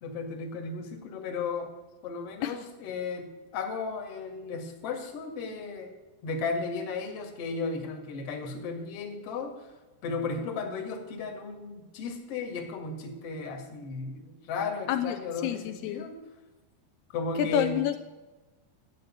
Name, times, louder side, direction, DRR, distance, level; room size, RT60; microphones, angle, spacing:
voice 1, 0.0-1.7 2.0-5.9 6.2-9.7 10.0-16.2 17.1-17.8, left 4 dB, 45° left, 4 dB, 2.3 m, -35 dB
voice 2, 15.4-16.1 17.4-18.0, left 10 dB, 80° left, 7 dB, 2.7 m, -28 dB
13.0 x 8.2 x 8.7 m, 1.2 s
omnidirectional pair, 4.7 m